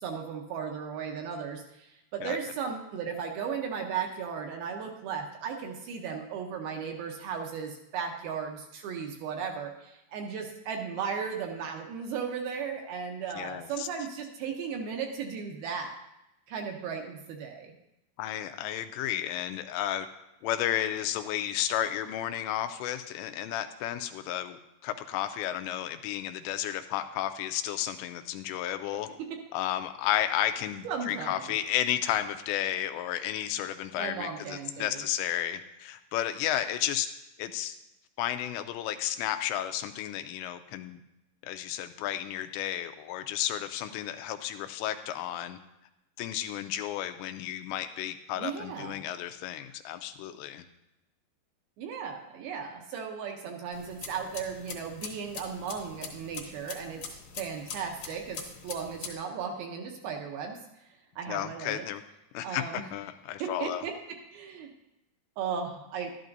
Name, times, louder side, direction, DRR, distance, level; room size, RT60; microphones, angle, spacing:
voice 1, 0.0-16.0 16.5-17.7 29.2-29.4 30.8-31.5 34.0-35.0 48.4-49.0 51.8-60.6 61.2-61.8 62.4-62.9 63.4-64.7 65.4-66.1, right 6 dB, 75° right, 3 dB, 2.3 m, -36 dB
voice 2, 13.4-13.9 18.2-20.1 20.4-29.1 29.5-37.1 37.4-37.8 38.2-41.0 41.4-45.6 46.2-50.6 61.3-62.0 62.3-63.8, left 11 dB, 85° left, 8 dB, 2.8 m, -32 dB
sound 1, 53.7-59.1, left 6 dB, 65° left, 2.5 m, -43 dB
12.0 x 11.5 x 2.6 m, 0.90 s
omnidirectional pair, 5.1 m